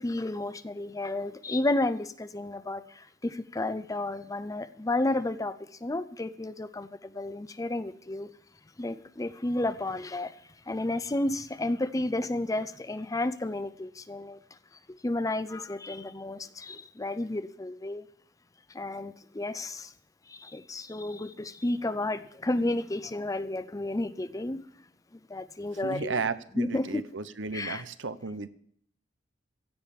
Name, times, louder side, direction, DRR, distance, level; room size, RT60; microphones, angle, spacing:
voice 1, 0.0-5.6 5.8-8.3 8.8-10.4 10.7-14.4 15.0-18.0 18.7-19.9 20.3-24.7 25.3-26.2 26.6-27.0 27.5-27.8, left 2 dB, 20° left, 0.5 m, -32 dB
voice 2, 25.8-28.5, right 4 dB, 90° right, 0.9 m, -34 dB
16.0 x 5.4 x 10.0 m
head